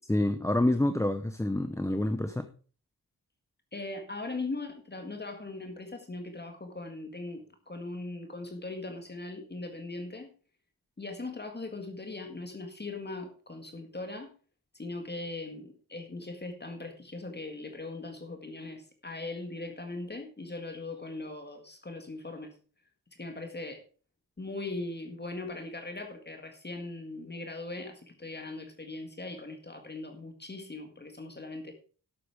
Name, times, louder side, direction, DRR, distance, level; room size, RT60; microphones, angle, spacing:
voice 1, 0.1-2.4, left 1 dB, 10° left, 8 dB, 0.7 m, -27 dB
voice 2, 3.7-10.3 11.0-14.3 14.7-22.5 23.1-23.8 24.4-31.7, left 2 dB, 30° left, 5 dB, 1.9 m, -40 dB
11.5 x 8.5 x 4.8 m, 0.38 s
wide cardioid pair, 140°, 36 cm